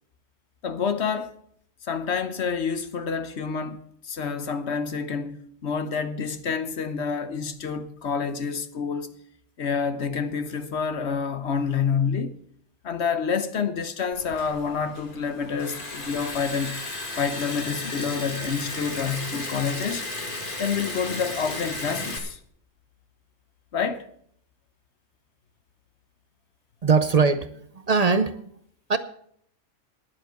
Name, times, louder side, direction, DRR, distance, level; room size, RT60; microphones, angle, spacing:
voice 1, 0.6-1.3 1.9-3.8 4.1-9.1 9.6-12.3 12.8-16.8 17.2-20.0 20.6-22.4 23.7-24.0, left 6 dB, 55° left, 1.1 m, -28 dB
Liquid, 14.1-22.2, left 2 dB, 40° left, 2.1 m, -34 dB
voice 2, 26.8-28.5 28.9-29.0, right 5 dB, 55° right, 0.4 m, -21 dB
10.5 x 9.3 x 6.6 m
omnidirectional pair, 1.4 m